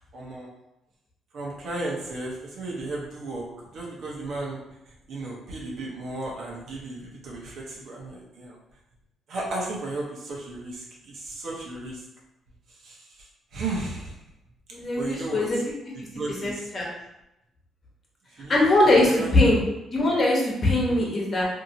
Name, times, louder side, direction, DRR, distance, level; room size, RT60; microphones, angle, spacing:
voice 1, 0.1-0.5 1.3-4.6 5.1-8.6 9.3-12.0 12.8-13.0 13.5-14.1 15.0-15.5 16.1-16.7 18.4-18.6 18.9-19.6 20.8-21.0, right 2 dB, 70° right, -3 dB, 0.9 m, -34 dB
voice 2, 14.7-15.6 16.4-16.9 18.5-19.6 19.9-21.5, left 2 dB, 40° left, -3 dB, 1.0 m, -21 dB
2.8 x 2.7 x 2.7 m, 0.89 s
cardioid pair, 90°, 0 cm